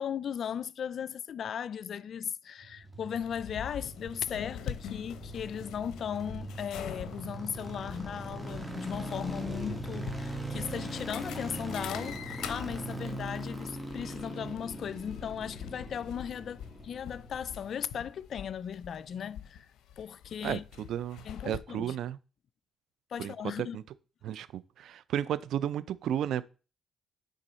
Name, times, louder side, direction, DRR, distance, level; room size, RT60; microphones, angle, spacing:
voice 1, 0.0-19.7 20.0-20.6 21.2-22.0 23.1-23.8, left 8 dB, 60° left, 0.3 m, -37 dB
sound 1, 2.6-17.9 18.1-18.2, right 1 dB, 5° right, 1.6 m, -41 dB
sound 2, 3.2-21.6, left 9 dB, 85° left, 0.7 m, -45 dB
voice 2, 20.4-22.2 23.2-23.3 23.7-23.8 24.2-26.4, right 10 dB, 75° right, 0.4 m, -33 dB
9.1 x 3.8 x 4.1 m
cardioid pair, 90°, 0 cm